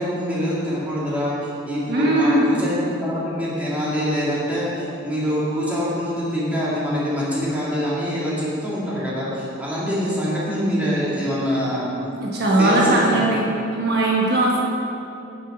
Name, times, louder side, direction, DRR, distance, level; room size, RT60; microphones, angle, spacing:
voice 1, 0.0-11.9 12.6-13.4, equal, 10° right, -8 dB, 2.3 m, -25 dB
voice 2, 1.9-2.5 12.2-13.5 13.7-14.6, right 1 dB, 55° right, -4 dB, 1.3 m, -19 dB
9.9 x 6.4 x 5.4 m, 2.7 s
head